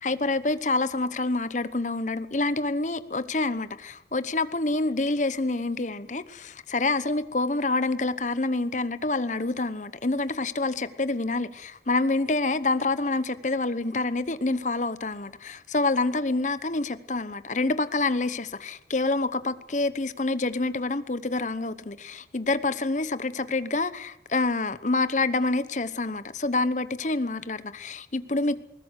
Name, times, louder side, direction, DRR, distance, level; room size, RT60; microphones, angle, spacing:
voice 1, 0.0-28.6, left 3 dB, 40° left, 1.0 m, -27 dB
20.5 x 19.0 x 8.2 m
head